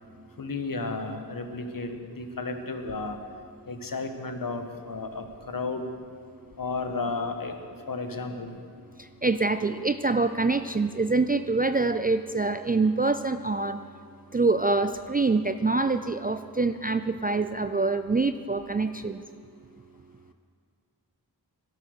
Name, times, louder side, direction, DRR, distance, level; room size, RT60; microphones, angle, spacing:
voice 1, 0.4-3.2 3.7-5.9 6.6-7.5 7.9-8.6, left 3 dB, 55° left, 6 dB, 1.4 m, -33 dB
voice 2, 9.2-13.8 14.3-19.2, right 3 dB, 25° right, 10 dB, 0.3 m, -25 dB
16.5 x 13.0 x 6.5 m, 2.1 s
wide cardioid pair, 125°, 41 cm